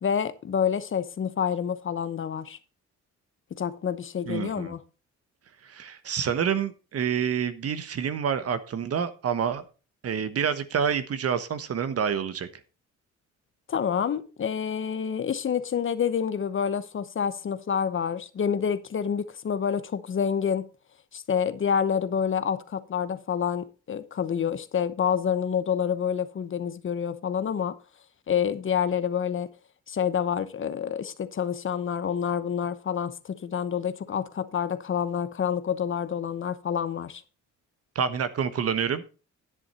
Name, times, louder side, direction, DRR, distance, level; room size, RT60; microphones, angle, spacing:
voice 1, 0.0-2.6 3.5-4.8 13.7-20.7 21.1-27.8 28.3-29.5 29.9-37.2, left 7 dB, 40° left, 0.9 m, -28 dB
voice 2, 4.3-4.7 5.6-9.6 10.0-12.5 37.9-39.0, right 7 dB, 50° right, 1.1 m, -28 dB
10.0 x 7.8 x 4.2 m
cardioid pair, 90°, 30 cm